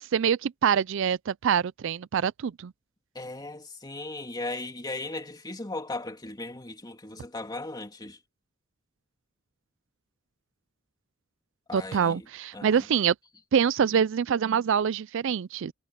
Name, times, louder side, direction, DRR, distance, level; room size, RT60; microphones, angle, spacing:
voice 1, 0.0-2.7 11.7-13.1 13.5-15.7, right 7 dB, 65° right, 0.4 m, -25 dB
voice 2, 3.1-8.2 11.7-12.3 12.5-12.8, left 2 dB, 20° left, 2.8 m, -37 dB
head